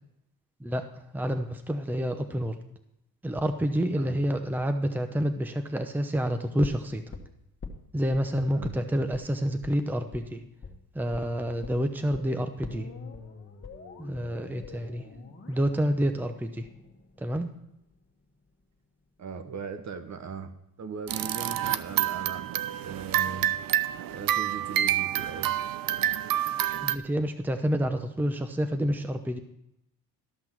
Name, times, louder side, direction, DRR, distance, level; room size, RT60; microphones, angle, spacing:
voice 1, 0.6-2.6 3.2-7.0 7.9-10.4 10.9-12.9 14.0-15.0 15.5-16.7 17.2-17.5 26.8-29.4, equal, 5° right, 7 dB, 0.8 m, -28 dB
sound 1, 6.6-8.2 8.6-8.8 9.1-9.3 9.6-9.8 10.1-10.3 10.6-10.8 11.1-11.3 11.6-17.6 17.9-18.0, left 4 dB, 30° left, 1.7 m, -44 dB
voice 2, 19.2-20.5 20.8-22.4 22.8-23.5 24.1-25.5, right 6 dB, 45° right, 9 dB, 1.2 m, -38 dB
sound 2, 21.1-27.0, right 12 dB, 60° right, 0.6 m, -28 dB
13.0 x 6.0 x 6.0 m, 0.82 s
cardioid pair, 95°, 39 cm